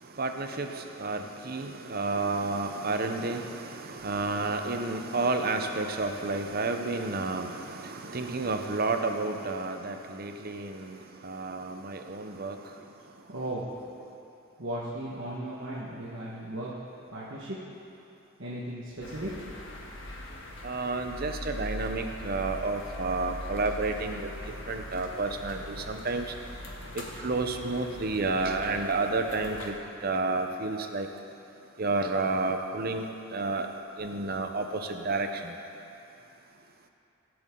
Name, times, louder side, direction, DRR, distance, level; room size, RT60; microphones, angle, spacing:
voice 1, 0.2-12.6 20.6-24.3 24.7-26.3 26.9-29.7 30.0-31.1 31.8-33.7 34.0-35.5, right 3 dB, 45° right, 5 dB, 0.8 m, -31 dB
voice 2, 13.3-13.7 14.6-16.8 17.1-17.7 18.4-19.4, right 1 dB, 60° right, -7 dB, 1.6 m, -36 dB
sound 1, 19.0-29.7, left 1 dB, 60° left, 1.5 m, -41 dB
23.5 x 7.9 x 3.9 m, 2.8 s
head